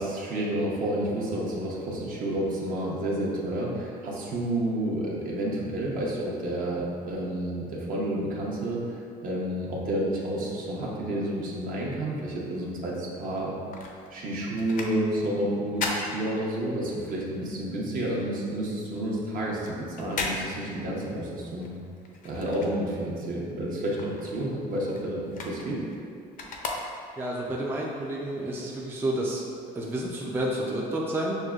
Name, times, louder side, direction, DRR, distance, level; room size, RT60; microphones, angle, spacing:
voice 1, 0.0-13.6 14.1-21.7 22.2-25.8, right 1 dB, 55° right, -4 dB, 0.9 m, -30 dB
sound 1, 13.4-17.0 17.3-23.3 23.6-27.4 27.9-28.0, left 3 dB, 55° left, 0.5 m, -37 dB
voice 2, 27.2-29.4 29.7-31.4, right 1 dB, 15° right, -3 dB, 0.4 m, -30 dB
6.2 x 2.1 x 2.3 m, 2.4 s
cardioid pair, 110°, 17 cm